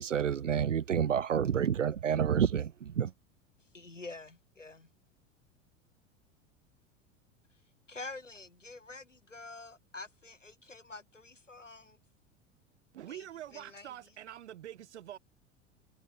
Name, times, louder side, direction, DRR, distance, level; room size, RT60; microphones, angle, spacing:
voice 1, 0.0-3.1, right 8 dB, 85° right, 0.6 m, -29 dB
voice 2, 3.7-4.9 7.9-12.0 13.1-13.2 13.5-13.9, left 3 dB, 85° left, 7.7 m, -47 dB
voice 3, 12.9-15.2, right 11 dB, 65° right, 6.3 m, -45 dB
figure-of-eight pair, 80°, 36 cm